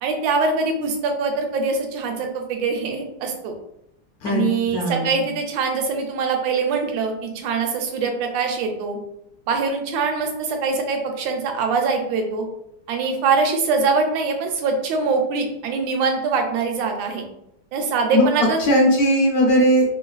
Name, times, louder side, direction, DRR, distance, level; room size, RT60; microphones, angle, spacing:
voice 1, 0.0-3.5 4.3-9.0 9.5-12.5 12.9-17.2 17.7-18.6, right 4 dB, 85° right, 4 dB, 1.3 m, -23 dB
voice 2, 4.7-5.2 18.1-18.3 18.7-20.0, equal, 65° left, 0 dB, 1.0 m, -18 dB
3.2 x 2.4 x 2.3 m, 0.78 s
omnidirectional pair, 2.0 m